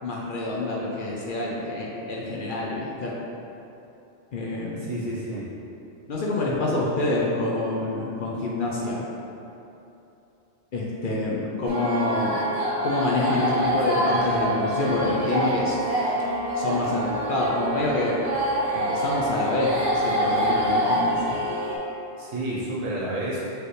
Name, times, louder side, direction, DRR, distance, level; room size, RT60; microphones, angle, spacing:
voice 1, 0.0-3.1 4.3-4.9 6.1-9.0 10.7-12.4 12.8-15.8 16.5-18.2 18.7-21.4, left 2 dB, 55° left, -4 dB, 0.7 m, -27 dB
voice 2, 4.8-5.4 22.2-23.4, right 1 dB, 70° right, -7 dB, 1.3 m, -30 dB
sound 1, 11.7-21.8, right 1 dB, 35° right, 0.8 m, -26 dB
4.8 x 3.2 x 3.2 m, 2.9 s
omnidirectional pair, 1.2 m